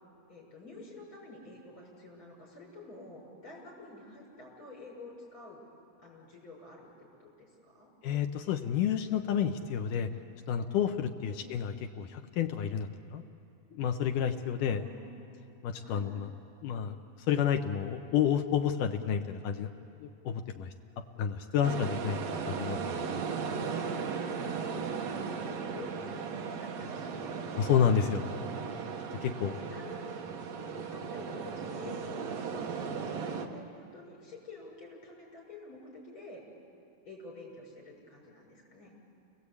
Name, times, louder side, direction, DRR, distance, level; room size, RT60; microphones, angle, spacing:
voice 1, 0.3-5.6 6.0-7.9 11.3-11.4 14.7-15.1 15.8-16.1 23.5-23.6 24.1-27.5 29.5-30.2 30.5-32.2 32.5-36.4 37.0-38.9, left 2 dB, 35° left, -4 dB, 7.0 m, -49 dB
voice 2, 8.0-10.1 10.5-13.2 13.7-14.8 15.6-16.3 16.6-17.0 17.3-19.7 20.0-23.2 27.5-28.3 29.2-29.5, left 8 dB, 75° left, 6 dB, 2.1 m, -30 dB
sound 1, 21.6-33.5, right 5 dB, 60° right, 1.9 m, -36 dB
29.5 x 20.5 x 8.4 m, 2.9 s
omnidirectional pair, 4.4 m